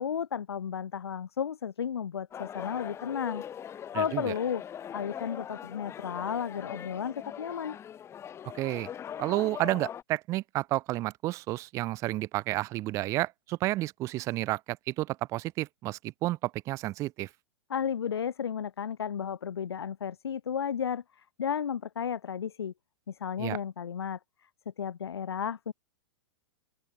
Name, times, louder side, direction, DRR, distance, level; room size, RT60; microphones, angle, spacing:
voice 1, 0.0-4.6 4.9-7.8 17.7-22.7 23.1-24.2 24.8-25.7, left 8 dB, 65° left, 1.1 m, -33 dB
sound 1, 2.3-10.0, left 9 dB, 20° left, 1.2 m, -41 dB
voice 2, 3.9-4.3 8.6-8.9 9.2-17.3 23.4-23.6, right 17 dB, 20° right, 0.3 m, -31 dB
open air
figure-of-eight pair, 105°, 14 cm